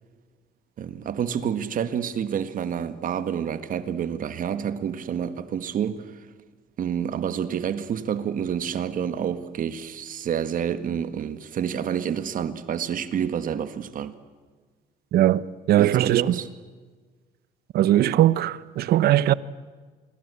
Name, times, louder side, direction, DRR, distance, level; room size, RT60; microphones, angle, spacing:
voice 1, 0.8-6.1 6.8-14.2 15.8-16.5, right 8 dB, 55° right, 1.8 m, -28 dB
voice 2, 15.1-16.2 17.7-19.3, right 13 dB, 70° right, 1.0 m, -20 dB
27.0 x 22.0 x 8.4 m
cardioid pair, 110°, 17 cm